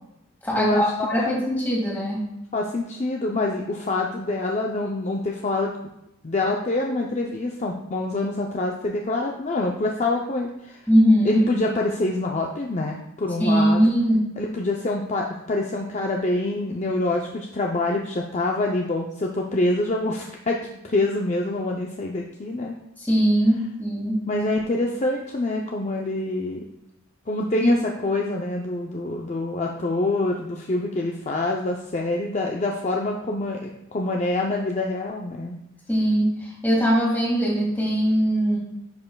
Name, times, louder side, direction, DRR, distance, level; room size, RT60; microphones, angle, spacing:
voice 1, 0.4-2.2 10.9-11.4 13.4-14.2 23.0-24.2 27.6-27.8 35.9-38.6, equal, 10° left, -4 dB, 1.9 m, -21 dB
voice 2, 2.5-5.7 6.2-10.9 11.2-13.9 14.4-20.6 20.8-22.8 24.3-26.7 27.3-35.6, left 2 dB, 35° left, 0 dB, 0.5 m, -26 dB
10.5 x 5.4 x 2.2 m, 0.88 s
head